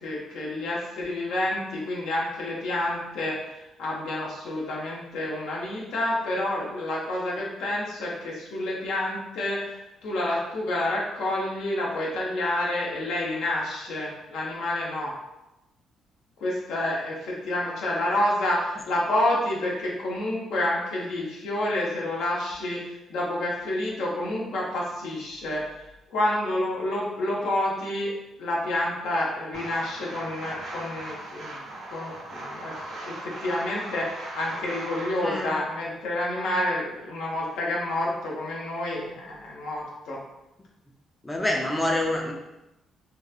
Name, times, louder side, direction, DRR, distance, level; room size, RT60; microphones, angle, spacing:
voice 1, 0.0-15.1 16.4-28.1 28.4-31.6 31.9-40.2, left 1 dB, 80° left, -3 dB, 0.7 m, -29 dB
sound 1, 29.5-35.3, right 1 dB, 70° right, 0.7 m, -38 dB
voice 2, 35.2-35.5 41.2-42.3, left 1 dB, 15° left, 0 dB, 0.4 m, -26 dB
2.9 x 2.2 x 2.3 m, 0.94 s
cardioid pair, 90°, 0 cm